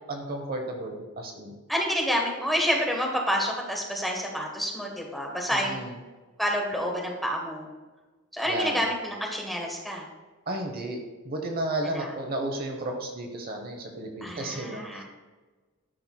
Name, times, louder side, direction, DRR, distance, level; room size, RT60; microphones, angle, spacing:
voice 1, 0.1-1.5 5.5-5.9 8.5-8.8 10.5-11.0 11.2-15.0, right 1 dB, 45° right, 3 dB, 0.8 m, -33 dB
voice 2, 1.7-5.8 6.4-7.7 8.3-10.1 11.9-12.1 14.2-15.0, equal, ahead, -1 dB, 1.2 m, -28 dB
12.0 x 5.7 x 2.3 m, 1.3 s
head